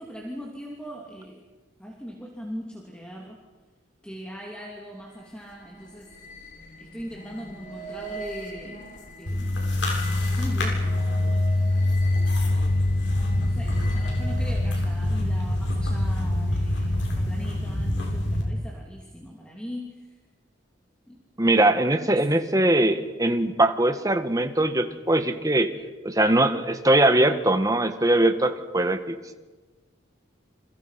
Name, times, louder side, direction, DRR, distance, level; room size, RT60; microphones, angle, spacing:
voice 1, 0.0-1.4 1.8-3.4 4.0-6.1 6.8-8.8 9.2-9.8 10.2-11.7 12.4-20.1 21.1-21.2 22.1-22.2, equal, 5° left, -1 dB, 3.0 m, -40 dB
sound 1, 4.9-14.6, right 1 dB, 40° left, 4.8 m, -42 dB
sound 2, 9.3-18.4, left 1 dB, 75° left, 7.3 m, -24 dB
voice 2, 21.4-25.7 26.0-29.1, right 1 dB, 20° right, 8 dB, 1.6 m, -21 dB
29.0 x 27.5 x 5.9 m, 1.2 s
head